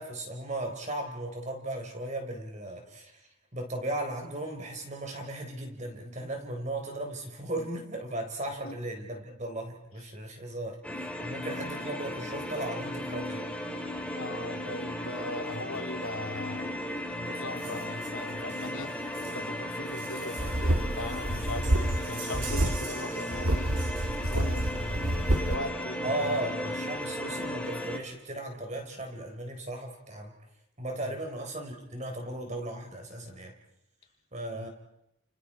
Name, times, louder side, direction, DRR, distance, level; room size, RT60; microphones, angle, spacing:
voice 1, 0.0-13.5 22.3-22.7 26.0-30.3 30.8-33.5 34.3-34.7, right 1 dB, 35° right, 4 dB, 4.0 m, -36 dB
sound 1, 10.8-28.0, left 1 dB, 5° left, 2.6 m, -36 dB
voice 2, 14.1-18.9 19.3-26.5 27.2-27.3 31.0-31.1 34.5-34.7, left 2 dB, 85° left, 3 dB, 3.2 m, -39 dB
sound 2, 17.6-25.9 27.0-27.1 27.4-27.5 27.7-27.9 28.2-28.8 29.3-29.4, right 6 dB, 60° right, 4.0 m, -47 dB
sound 3, 20.4-22.1 22.3-22.8 23.3-25.6, right 1 dB, 80° right, 1.6 m, -28 dB
30.0 x 29.5 x 4.4 m, 0.83 s
head